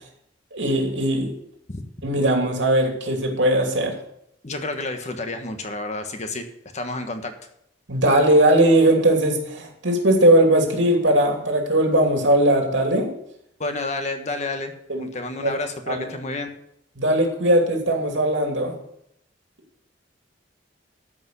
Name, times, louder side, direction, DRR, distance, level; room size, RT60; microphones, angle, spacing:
voice 1, 0.5-1.3 2.0-3.9 7.9-13.1 14.9-15.1 15.4-15.5 15.9-16.1 17.0-18.8, right 1 dB, 85° right, 2 dB, 2.8 m, -19 dB
voice 2, 4.4-6.5 6.7-7.3 13.6-14.7 15.0-16.5, left 2 dB, 40° left, 6 dB, 1.4 m, -30 dB
13.5 x 5.4 x 8.2 m, 0.75 s
head